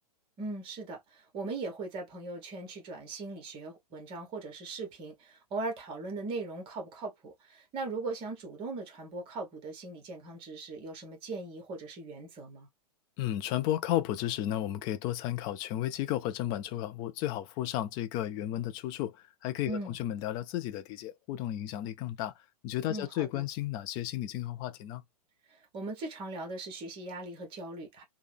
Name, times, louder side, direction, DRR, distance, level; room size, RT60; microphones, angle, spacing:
voice 1, 0.4-12.7 19.7-20.0 22.9-23.5 25.5-28.0, right 3 dB, 25° right, 1.3 m, -39 dB
voice 2, 13.2-22.3 22.6-25.0, left 13 dB, 20° left, 0.3 m, -33 dB
3.2 x 2.2 x 3.3 m
figure-of-eight pair, 110°, 20 cm